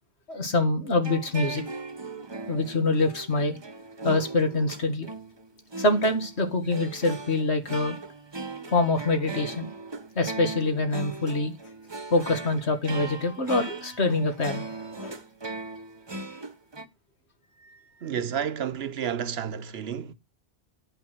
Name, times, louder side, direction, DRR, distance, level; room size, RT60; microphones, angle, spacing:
voice 1, 0.3-1.6 2.5-3.6 4.0-5.1 5.8-8.0 8.7-9.7 10.2-11.5 12.1-14.7 15.0-15.1, left 2 dB, 85° left, 2.3 m, -25 dB
sound 1, 1.0-16.8, right 3 dB, 25° right, 0.9 m, -39 dB
voice 2, 18.0-20.1, right 8 dB, 75° right, 1.0 m, -31 dB
11.0 x 5.7 x 6.4 m
omnidirectional pair, 1.1 m